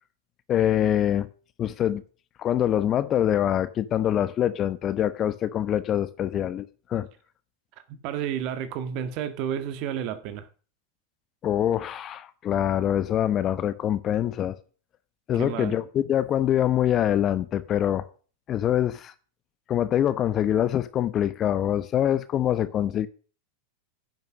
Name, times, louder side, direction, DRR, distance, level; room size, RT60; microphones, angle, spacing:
voice 1, 0.5-1.3 1.6-2.0 2.4-7.1 11.4-14.6 15.3-18.1 18.5-19.1 19.7-23.1, left 11 dB, 30° left, 1.0 m, -24 dB
voice 2, 7.9-10.5 15.4-15.8, right 9 dB, 40° right, 1.8 m, -31 dB
10.5 x 9.3 x 6.3 m
figure-of-eight pair, 90°, 0 cm